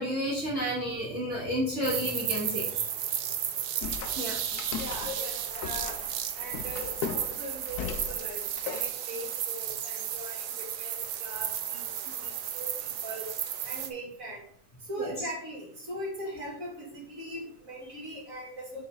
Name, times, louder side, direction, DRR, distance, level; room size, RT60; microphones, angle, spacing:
voice 1, 0.0-2.7 4.1-4.4 15.0-15.1, equal, 20° left, -5 dB, 2.7 m, -31 dB
sound 1, 1.8-13.9, right 9 dB, 75° right, 1.3 m, -34 dB
sound 2, 3.8-8.8, left 8 dB, 80° left, 1.1 m, -38 dB
voice 2, 4.8-6.0 6.3-13.3 13.6-14.4 14.8-18.8, right 1 dB, 55° right, -4 dB, 2.6 m, -40 dB
6.6 x 4.6 x 5.4 m, 0.65 s
omnidirectional pair, 1.7 m